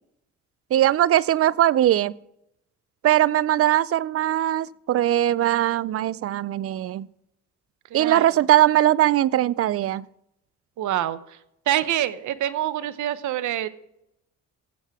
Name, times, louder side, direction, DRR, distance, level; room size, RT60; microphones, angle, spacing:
voice 1, 0.7-2.2 3.0-7.1 7.9-10.1, right 13 dB, 50° right, 22 dB, 0.4 m, -20 dB
voice 2, 7.9-8.2 10.8-11.4 11.7-13.7, right 12 dB, 75° right, 15 dB, 0.8 m, -26 dB
15.5 x 7.3 x 3.5 m, 0.79 s
cardioid pair, 90°, 30 cm